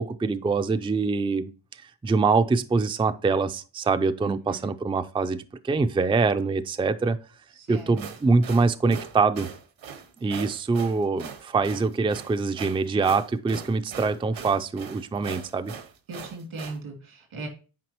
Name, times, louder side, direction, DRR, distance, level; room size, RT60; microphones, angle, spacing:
voice 1, 0.0-1.5 1.8-7.2 7.7-9.5 10.2-15.7, right 4 dB, 10° right, 0.4 m, -24 dB
voice 2, 4.2-4.7 7.7-8.0 16.1-17.5, right 3 dB, 90° right, 2.9 m, -37 dB
sound 1, 7.8-16.8, right 6 dB, 70° right, 1.2 m, -40 dB
9.3 x 4.7 x 2.9 m
cardioid pair, 85°, 47 cm